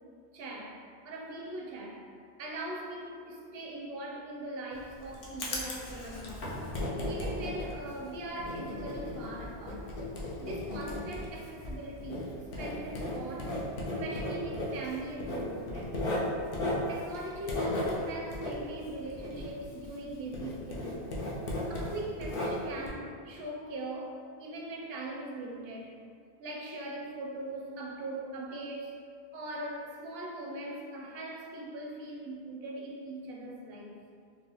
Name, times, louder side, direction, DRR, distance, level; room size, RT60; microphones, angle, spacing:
voice 1, 0.3-0.8 1.0-2.1 2.4-6.6 7.1-9.9 10.4-13.6 14.0-16.0 16.9-21.0 21.5-25.9 26.4-29.0 29.3-34.0, right 1 dB, 70° right, -2 dB, 0.7 m, -41 dB
Writing, 4.7-20.1 20.3-22.9, left 1 dB, 60° left, 0.8 m, -36 dB
3.9 x 2.1 x 2.9 m, 2.3 s
omnidirectional pair, 1.1 m